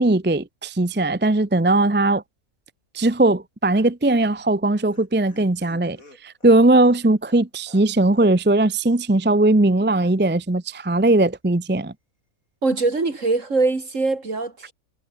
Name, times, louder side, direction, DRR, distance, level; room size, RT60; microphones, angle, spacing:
voice 1, 0.0-2.2 2.9-6.0 6.2-11.9, right 2 dB, 10° right, 0.7 m, -19 dB
Laughter, 4.3-8.3 8.6-8.7 9.0-9.1, left 2 dB, 70° left, 6.9 m, -51 dB
voice 2, 12.6-14.7, right 3 dB, 60° right, 3.7 m, -22 dB
omnidirectional pair, 1.5 m